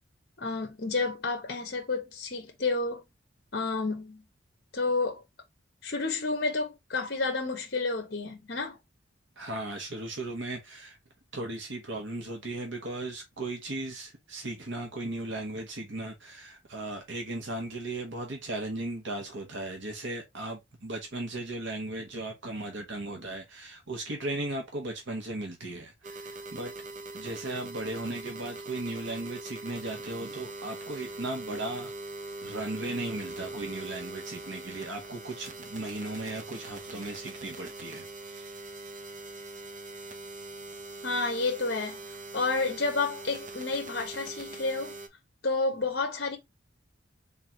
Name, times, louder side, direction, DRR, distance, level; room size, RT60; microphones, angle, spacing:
voice 1, 0.4-3.0 3.5-4.2 4.7-5.2 5.8-8.8 41.0-42.0 42.3-45.0 45.4-46.4, left 3 dB, 55° left, 1.1 m, -30 dB
voice 2, 9.4-11.0 11.3-26.7 27.1-31.9 32.4-38.5, right 2 dB, 70° right, 1.3 m, -36 dB
sound 1, 26.0-45.1, right 2 dB, 40° right, 0.7 m, -42 dB
3.9 x 3.7 x 2.8 m
head